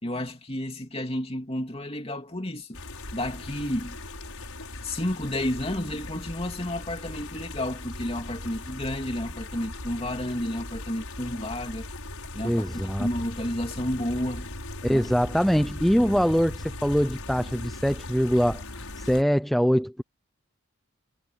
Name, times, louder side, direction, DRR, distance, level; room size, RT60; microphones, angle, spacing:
voice 1, 0.0-2.8 3.1-4.0 4.8-11.9 12.3-14.5 14.9-15.1, left 1 dB, 25° left, 2.9 m, -31 dB
sound 1, 2.7-19.2, left 2 dB, 80° left, 6.3 m, -39 dB
voice 2, 12.4-13.1 14.8-20.0, equal, ahead, 0.5 m, -23 dB
head